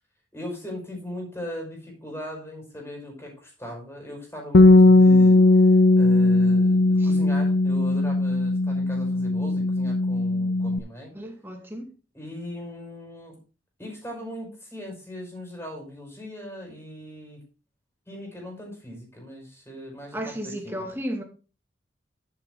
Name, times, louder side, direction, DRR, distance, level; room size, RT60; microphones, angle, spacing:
voice 1, 0.3-11.1 12.1-13.3 13.8-17.4 18.1-20.8, equal, 15° left, 5.3 m, -39 dB
Bass guitar, 4.5-10.8, left 2 dB, 65° left, 0.7 m, -18 dB
voice 2, 11.1-11.9 20.1-21.2, equal, 10° right, 2.3 m, -34 dB
12.0 x 7.4 x 3.8 m
head